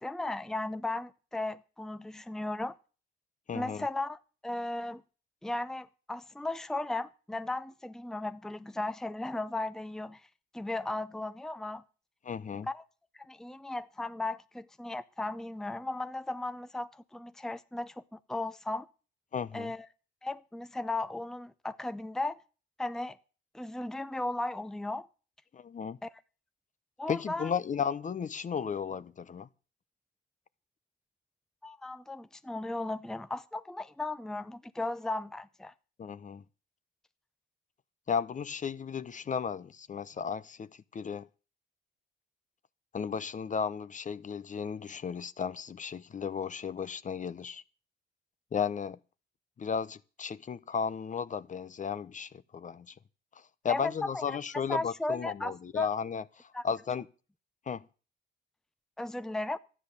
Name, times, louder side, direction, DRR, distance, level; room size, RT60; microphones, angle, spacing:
voice 1, 0.0-2.8 3.5-5.0 5.4-10.2 10.5-11.8 12.7-12.8 13.1-18.0 18.3-18.9 19.5-19.9 20.2-22.4 22.8-23.2 23.5-25.1 26.0-26.1 27.0-27.5 31.6-35.7 53.7-54.4 54.7-55.9 56.5-56.6 59.0-59.6, left 2 dB, 5° left, 0.7 m, -36 dB
voice 2, 3.5-3.8 12.2-12.7 19.3-19.7 25.5-26.0 27.1-29.5 36.0-36.4 38.1-41.3 42.9-47.6 48.5-49.0 49.6-52.9 53.6-57.1 57.7-57.8, left 6 dB, 40° left, 0.8 m, -34 dB
13.0 x 9.9 x 6.8 m
cardioid pair, 90°, 20 cm